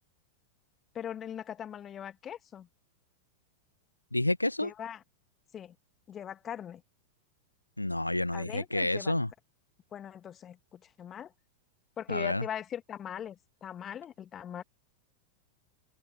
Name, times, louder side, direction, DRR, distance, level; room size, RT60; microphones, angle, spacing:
voice 1, 0.9-2.7 4.6-5.0 5.5-5.7 6.1-6.8 8.3-9.1 9.9-11.3 12.0-14.6, left 9 dB, 25° left, 1.6 m, -41 dB
voice 2, 4.1-4.7 7.8-9.3 12.1-12.4, left 1 dB, 85° left, 1.0 m, -29 dB
open air
figure-of-eight pair, 90°, 0 cm